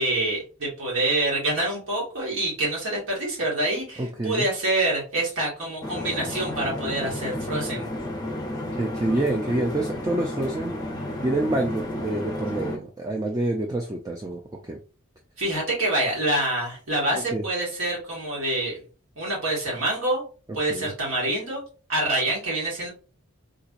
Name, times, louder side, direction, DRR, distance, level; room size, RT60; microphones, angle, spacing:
voice 1, 0.0-7.9 15.4-18.8 19.2-20.3 20.5-21.6 21.9-22.9, right 1 dB, 65° right, -4 dB, 2.0 m, -26 dB
voice 2, 4.0-4.5 8.7-10.8 11.2-14.8 17.1-17.4 20.7-20.9, right 1 dB, 15° right, 1 dB, 0.3 m, -27 dB
sound 1, 5.8-12.8, left 1 dB, 20° left, 0.7 m, -32 dB
3.8 x 2.9 x 2.5 m, 0.35 s
head